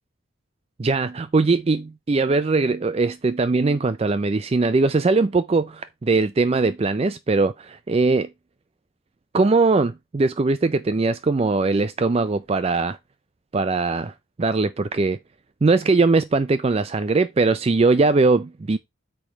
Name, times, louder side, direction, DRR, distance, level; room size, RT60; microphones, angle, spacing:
voice 1, 0.8-7.5 7.9-8.3 9.3-13.0 13.5-14.1 14.4-15.2 15.6-18.8, right 3 dB, 30° right, 0.4 m, -20 dB
8.6 x 3.3 x 6.0 m
head